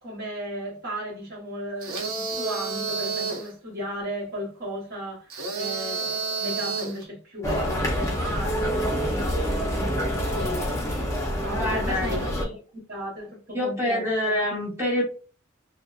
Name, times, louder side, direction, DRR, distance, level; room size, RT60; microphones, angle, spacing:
voice 1, 0.0-10.9 11.4-12.4 12.9-14.4, equal, 50° right, 1.0 m, -35 dB
sound 1, 1.8-3.5 5.3-7.0, right 4 dB, 80° right, 0.7 m, -30 dB
sound 2, 7.4-12.4, equal, 15° left, 0.5 m, -27 dB
voice 2, 11.6-12.2 13.5-15.0, left 1 dB, 15° right, 0.8 m, -26 dB
2.7 x 2.1 x 2.3 m
head